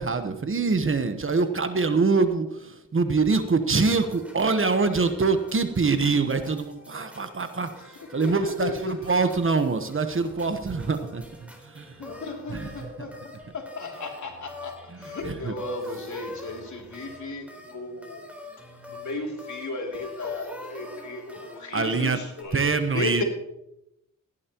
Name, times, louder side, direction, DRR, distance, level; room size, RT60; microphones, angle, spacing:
voice 1, 0.0-12.0 12.5-12.9 14.9-15.5 21.7-22.2 22.5-23.2, right 4 dB, 40° right, 9 dB, 1.1 m, -25 dB
sound 1, 3.7-22.4, left 2 dB, 5° right, 3.7 m, -46 dB
voice 2, 8.0-9.2 12.0-18.3 18.9-22.7 22.9-23.2, left 2 dB, 60° left, 1 dB, 2.9 m, -34 dB
17.0 x 10.5 x 3.0 m, 0.84 s
cardioid pair, 65°, 33 cm